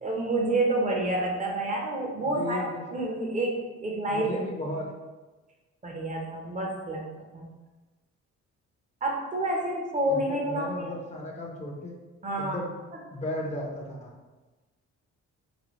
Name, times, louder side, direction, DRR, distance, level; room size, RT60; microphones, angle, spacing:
voice 1, 0.0-4.4 5.8-7.5 9.0-10.9 12.2-12.6, right 1 dB, 25° right, -1 dB, 0.9 m, -29 dB
voice 2, 2.2-2.8 4.1-4.9 10.1-11.9 12.4-12.7 13.1-14.2, left 1 dB, 25° left, -1 dB, 0.8 m, -35 dB
5.0 x 2.2 x 3.1 m, 1.2 s
cardioid pair, 90°, 30 cm